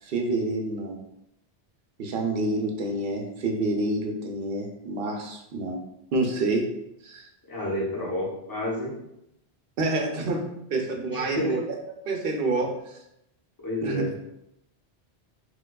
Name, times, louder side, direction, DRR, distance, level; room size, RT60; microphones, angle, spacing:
voice 1, 0.0-1.0 2.0-5.8 6.1-6.7 7.0-7.3 9.8-13.0 13.8-14.1, right 2 dB, 65° right, 2 dB, 0.7 m, -28 dB
voice 2, 7.5-8.9 11.1-11.6 13.6-14.1, left 1 dB, 20° left, -5 dB, 0.9 m, -29 dB
4.3 x 2.3 x 2.3 m, 0.80 s
omnidirectional pair, 1.1 m